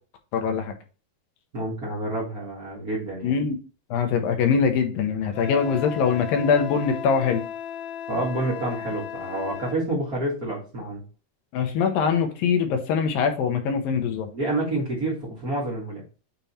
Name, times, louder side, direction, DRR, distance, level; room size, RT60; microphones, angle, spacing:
voice 1, 0.3-0.7 3.2-3.6 3.9-7.4 11.5-14.3, left 6 dB, 75° left, 5 dB, 2.3 m, -23 dB
voice 2, 1.5-3.3 8.1-11.0 14.3-16.0, right 2 dB, 75° right, -5 dB, 0.8 m, -28 dB
Wind instrument woodwind instrument, 5.3-9.8, left 9 dB, 90° left, 3.2 m, -35 dB
9.0 x 3.0 x 4.1 m, 0.35 s
omnidirectional pair, 4.6 m